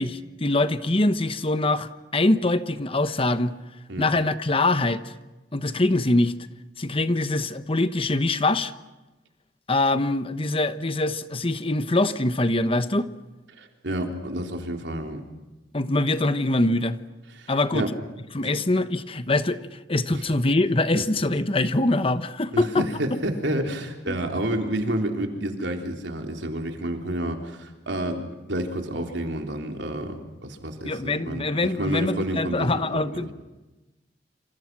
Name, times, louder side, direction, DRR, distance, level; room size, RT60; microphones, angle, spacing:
voice 1, 0.0-3.5 4.0-5.1 5.5-6.3 6.8-8.7 9.7-13.1 15.7-17.0 17.5-17.9 18.3-22.8 24.1-24.2 30.8-33.3, left 2 dB, 30° left, 12 dB, 1.1 m, -23 dB
voice 2, 13.6-15.2 17.4-17.9 18.4-18.5 22.5-31.5 31.8-33.3, right 1 dB, 80° right, 3 dB, 3.6 m, -29 dB
27.5 x 27.5 x 6.1 m, 1.1 s
head